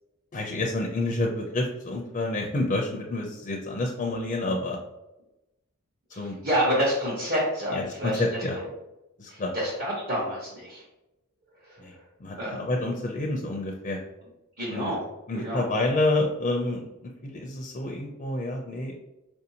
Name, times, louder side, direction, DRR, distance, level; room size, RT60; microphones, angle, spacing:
voice 1, 0.3-4.8 6.2-6.4 7.7-8.6 9.2-9.5 11.8-11.9 12.2-14.0 14.7-14.9 15.3-18.9, left 2 dB, 35° left, 1 dB, 0.4 m, -28 dB
voice 2, 6.1-8.2 9.3-10.8 11.6-12.0 12.4-12.6 14.6-15.0 15.3-15.6, equal, 45° right, -7 dB, 1.0 m, -28 dB
4.6 x 2.6 x 2.8 m, 0.95 s
head